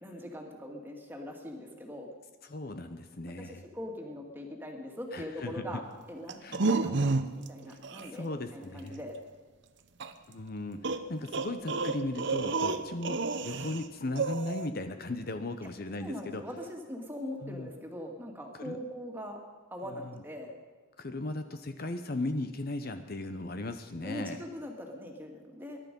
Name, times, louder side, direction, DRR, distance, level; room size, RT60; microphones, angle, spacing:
voice 1, 0.0-2.1 3.4-5.8 6.1-6.4 6.6-9.2 12.6-12.8 13.5-13.7 15.6-15.7 16.0-19.4 19.7-20.5 24.0-25.8, equal, 10° right, 1 dB, 2.1 m, -41 dB
voice 2, 2.5-3.6 5.1-5.8 6.4-6.8 7.7-7.8 8.1-9.0 10.3-16.4 17.4-17.7 18.6-18.8 19.9-20.1 21.0-24.4, left 2 dB, 45° left, 8 dB, 0.8 m, -37 dB
sound 1, 6.3-7.5 7.8-8.1 10.0-10.1 10.8-13.8 14.2-14.7, right 3 dB, 55° right, 0.9 m, -30 dB
22.0 x 12.0 x 5.3 m, 1.5 s
head